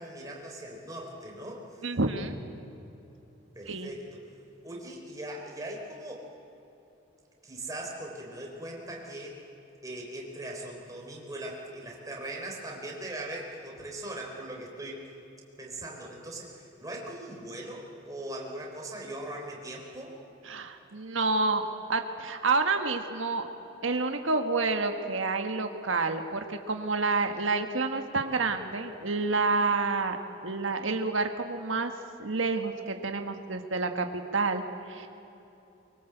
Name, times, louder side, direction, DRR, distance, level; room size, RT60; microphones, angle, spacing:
voice 1, 0.0-1.9 3.6-4.0 4.6-6.3 7.4-9.4 9.8-15.0 15.6-20.2, right 1 dB, 20° right, -1 dB, 3.8 m, -40 dB
voice 2, 1.8-2.4 3.7-3.9 20.4-23.5 23.8-30.2 30.4-31.9 32.2-35.1, right 3 dB, 85° right, 5 dB, 1.6 m, -29 dB
24.5 x 23.0 x 8.0 m, 2.9 s
head